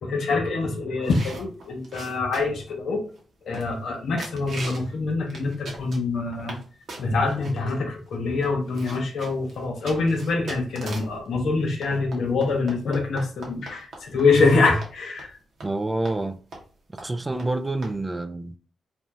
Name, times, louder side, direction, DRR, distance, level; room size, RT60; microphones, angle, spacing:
voice 1, 0.0-3.0 3.5-6.6 7.0-15.3, left 3 dB, 70° left, 0.6 m, -25 dB
sound 1, 1.0-2.7 3.2-3.3 3.5-3.9 4.2-4.9 5.3-6.6 6.9-7.5 8.1-8.2 8.4-11.2 11.8-14.5 14.8-14.9 15.2-15.3 15.6-15.7 16.0-16.2 16.5-16.7 17.0-17.1 17.4-17.5 17.8-17.9, right 2 dB, 65° right, 0.8 m, -40 dB
voice 2, 15.6-16.4 17.0-18.5, right 2 dB, 25° right, 0.3 m, -27 dB
2.6 x 2.1 x 3.0 m
hypercardioid pair, 40°, 0 cm